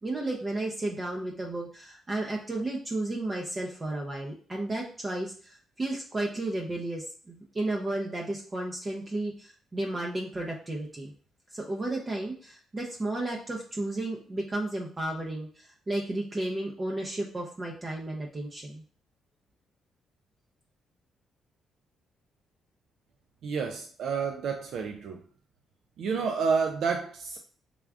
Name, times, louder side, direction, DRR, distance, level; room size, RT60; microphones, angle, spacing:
voice 1, 0.0-11.1 11.5-18.8, right 2 dB, 25° right, -1 dB, 0.6 m, -33 dB
voice 2, 23.4-25.3 26.0-27.4, right 5 dB, 70° right, 3 dB, 0.4 m, -29 dB
3.4 x 2.4 x 3.5 m, 0.44 s
cardioid pair, 90°, 0 cm